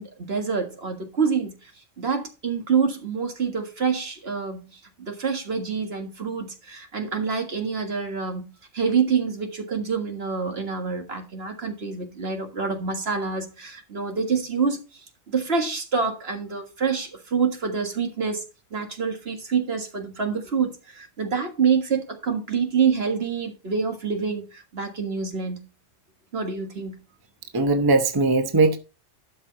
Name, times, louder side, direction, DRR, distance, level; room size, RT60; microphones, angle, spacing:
voice 1, 0.0-1.5 2.0-4.7 5.0-8.4 8.7-14.8 15.3-18.4 18.7-25.6 26.3-27.0, right 5 dB, 55° right, 1.9 m, -26 dB
voice 2, 27.5-28.8, right 3 dB, 20° right, 0.9 m, -19 dB
12.0 x 5.8 x 4.0 m
omnidirectional pair, 1.2 m